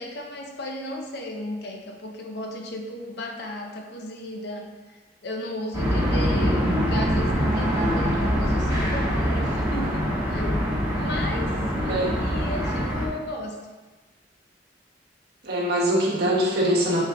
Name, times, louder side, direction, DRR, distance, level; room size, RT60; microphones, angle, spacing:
voice 1, 0.0-4.7 5.2-6.6 6.9-10.7 10.9-13.6, left 1 dB, 65° left, 2 dB, 0.6 m, -35 dB
sound 1, 5.7-13.1, equal, 15° right, 1.4 m, -24 dB
voice 2, 5.8-6.7 11.9-12.1 15.4-17.0, right 1 dB, 60° right, -5 dB, 1.2 m, -24 dB
5.3 x 2.9 x 3.5 m, 1.3 s
head